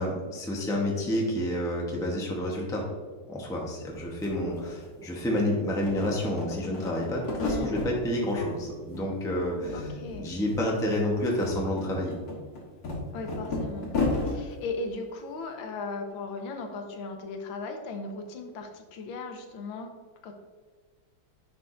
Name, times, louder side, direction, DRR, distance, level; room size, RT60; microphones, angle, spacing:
voice 1, 0.0-2.9 3.3-9.9 10.2-12.1, left 1 dB, 5° left, -2 dB, 0.6 m, -29 dB
sound 1, 3.9-4.0 4.2-5.4 5.7-7.9 8.3-9.1 9.3-10.2 10.4-10.6 11.1-14.4, left 3 dB, 55° left, 1.8 m, -33 dB
voice 2, 7.5-7.8 9.7-10.3 13.1-13.9 14.2-19.9 20.2-20.3, left 3 dB, 90° left, 5 dB, 1.6 m, -37 dB
9.9 x 4.6 x 2.6 m, 1.5 s
omnidirectional pair, 2.1 m